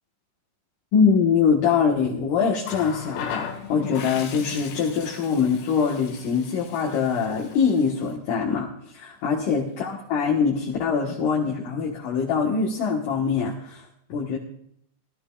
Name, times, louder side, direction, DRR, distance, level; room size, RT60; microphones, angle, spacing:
voice 1, 0.9-14.4, left 6 dB, 60° left, -2 dB, 2.5 m, -23 dB
Water tap faucet, 2.6-8.2 9.4-9.6, left 7 dB, 75° left, 3.7 m, -38 dB
20.0 x 12.5 x 2.4 m, 0.70 s
omnidirectional pair, 5.2 m